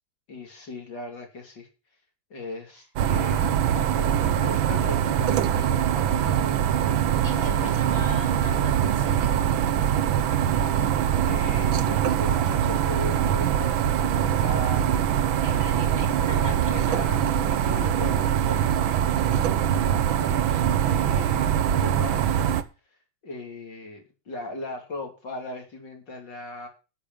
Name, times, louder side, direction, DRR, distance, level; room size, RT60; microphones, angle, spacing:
voice 1, 0.3-1.7 2.3-7.0 7.3-8.0 10.3-10.6 11.3-15.2 15.9-16.0 16.3-19.2 20.2-22.5 23.2-26.7, left 2 dB, 60° left, 3 dB, 3.6 m, -38 dB
sound 1, 3.0-22.6, right 9 dB, 80° right, 1.6 m, -23 dB
voice 2, 7.2-9.7 15.4-16.7, equal, 30° right, 3 dB, 2.9 m, -40 dB
11.5 x 6.8 x 7.2 m, 0.33 s
omnidirectional pair, 2.2 m